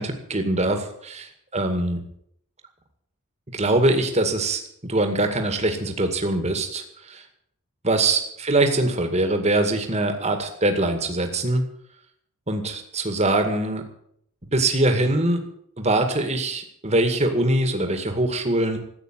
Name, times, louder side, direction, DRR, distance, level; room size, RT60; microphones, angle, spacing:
voice 1, 0.0-2.0 3.5-7.2 7.8-11.7 12.5-13.9 14.5-15.5 15.8-18.8, right 2 dB, 30° right, 6 dB, 2.1 m, -23 dB
14.5 x 9.0 x 9.1 m, 0.70 s
head